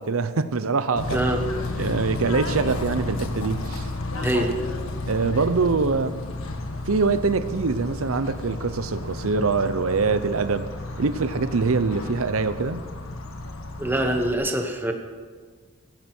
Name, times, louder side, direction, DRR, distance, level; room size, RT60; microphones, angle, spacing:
voice 1, 0.0-1.2 1.8-3.9 5.1-6.1 6.9-10.7 11.0-12.8, right 4 dB, 85° right, 12 dB, 0.7 m, -24 dB
Bird / Train, 1.0-14.3, left 2 dB, 80° left, 1.5 m, -32 dB
voice 2, 1.1-1.4 4.2-4.6 13.8-14.9, right 1 dB, 10° right, 3 dB, 1.2 m, -24 dB
16.5 x 15.5 x 4.5 m, 1.5 s
head